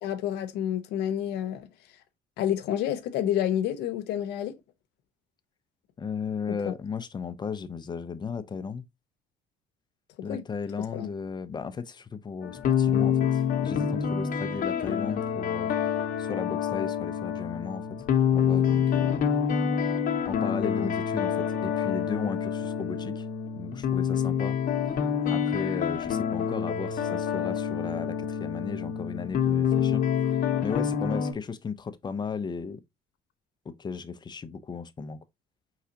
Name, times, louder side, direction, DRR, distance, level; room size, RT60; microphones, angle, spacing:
voice 1, 0.0-1.7 2.4-4.5 10.2-10.4 10.9-11.1 19.1-19.2 20.8-20.9, left 10 dB, 85° left, 0.7 m, -29 dB
voice 2, 6.0-8.9 10.2-15.7 16.2-17.9 18.3-19.2 20.3-23.3 23.6-24.6 25.3-30.0 30.3-32.8 33.6-35.2, left 5 dB, 25° left, 0.5 m, -35 dB
sound 1, 12.4-31.3, left 8 dB, 55° left, 0.9 m, -27 dB
4.8 x 3.3 x 2.7 m
cardioid pair, 110°, 17 cm